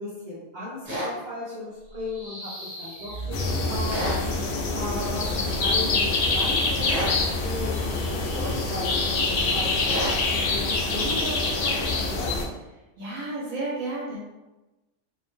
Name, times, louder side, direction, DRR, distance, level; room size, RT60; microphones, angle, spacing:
voice 1, 0.0-3.4 3.7-4.0 4.7-10.1 10.5-12.3, left 1 dB, 45° right, -9 dB, 0.6 m, -36 dB
sound 1, 0.8-1.1 3.9-4.2 6.8-7.2 9.9-10.2, equal, 20° right, 1.1 m, -29 dB
sound 2, 1.9-4.7, equal, 40° left, 0.9 m, -35 dB
sound 3, 3.3-12.4, left 3 dB, 80° left, 0.5 m, -25 dB
voice 2, 13.0-14.4, right 2 dB, 75° right, -4 dB, 1.0 m, -32 dB
2.7 x 2.1 x 3.0 m, 1.1 s
omnidirectional pair, 1.5 m